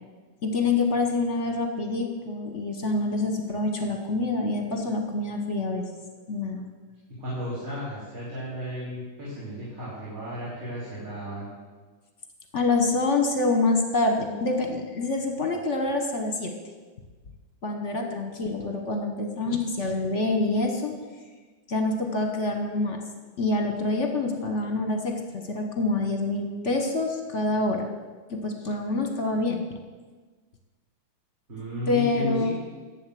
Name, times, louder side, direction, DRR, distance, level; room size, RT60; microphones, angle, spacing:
voice 1, 0.4-5.8 6.3-6.7 12.5-16.5 17.6-21.0 21.7-23.0 23.4-27.9 28.3-29.6 31.9-32.5, left 3 dB, 40° left, 4 dB, 1.2 m, -26 dB
voice 2, 7.2-11.5 31.5-32.5, equal, 40° right, -9 dB, 4.0 m, -34 dB
11.5 x 7.9 x 7.7 m, 1.4 s
omnidirectional pair, 2.2 m